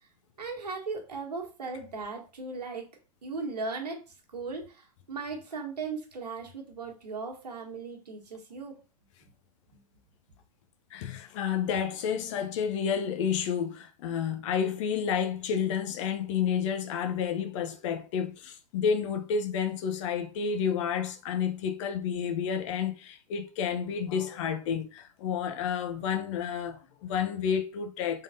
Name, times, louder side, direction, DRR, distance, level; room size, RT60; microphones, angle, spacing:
voice 1, 0.4-2.9 3.2-4.0 4.3-8.8 9.7-9.8, right 4 dB, 85° right, 1.3 m, -37 dB
voice 2, 10.9-28.2, left 7 dB, 50° left, 0.7 m, -30 dB
3.7 x 3.6 x 2.6 m
hypercardioid pair, 115°, 20 cm